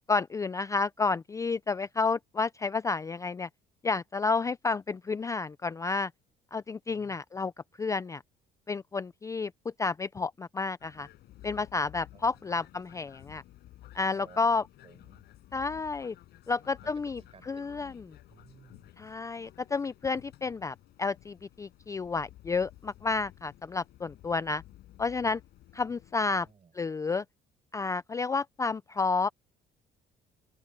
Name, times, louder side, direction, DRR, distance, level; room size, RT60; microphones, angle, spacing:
voice 1, 0.1-3.5 3.8-6.1 6.5-7.5 7.8-8.2 8.7-9.5 9.8-11.1 11.4-13.4 13.9-14.6 15.5-16.1 16.5-17.9 19.0-24.6 25.0-25.4 25.7-26.5 26.7-27.2 27.7-29.3, left 4 dB, 20° left, 0.4 m, -30 dB
voice 2, 6.9-7.2 12.1-12.7 14.1-15.3 16.5-17.7 18.3-19.0 26.3-26.8, right 6 dB, 35° right, 5.2 m, -58 dB
sound 1, 10.8-26.5, left 15 dB, 75° left, 5.6 m, -54 dB
open air
cardioid pair, 110°, 17 cm